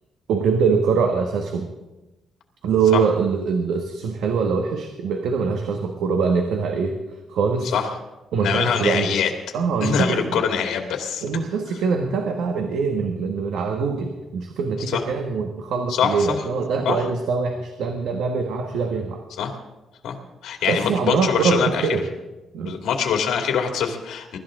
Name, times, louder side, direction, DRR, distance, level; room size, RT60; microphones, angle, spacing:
voice 1, 0.3-1.7 2.6-7.0 7.3-7.8 8.3-9.2 9.5-10.4 11.2-19.2 20.7-22.1 22.5-22.8, right 5 dB, 85° right, 4 dB, 1.4 m, -23 dB
voice 2, 8.4-9.3 9.8-11.2 14.9-15.0 15.9-16.4 16.8-17.0 19.4-19.6 20.0-20.2 20.4-21.9 22.6-24.4, left 7 dB, 85° left, 3 dB, 2.4 m, -23 dB
23.0 x 13.0 x 3.8 m, 1.1 s
cardioid pair, 140°, 0 cm